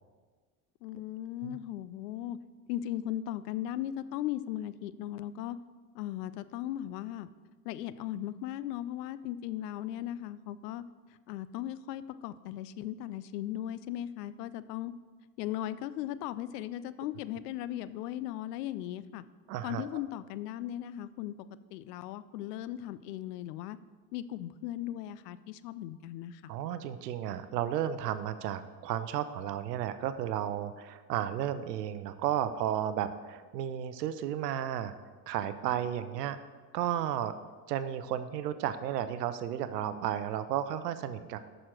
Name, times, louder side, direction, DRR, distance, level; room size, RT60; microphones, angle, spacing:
voice 1, 0.8-2.4 2.7-5.6 5.9-7.3 7.6-10.8 11.3-14.9 15.4-19.2 19.6-21.3 21.7-23.8 24.1-26.4, left 12 dB, 80° left, 15 dB, 0.6 m, -37 dB
voice 2, 19.5-19.9 26.5-34.9 35.3-36.4 36.7-37.3 37.7-41.4, right 10 dB, 90° right, 12 dB, 0.7 m, -33 dB
6.9 x 6.4 x 6.2 m, 1.4 s
hypercardioid pair, 75°, 47 cm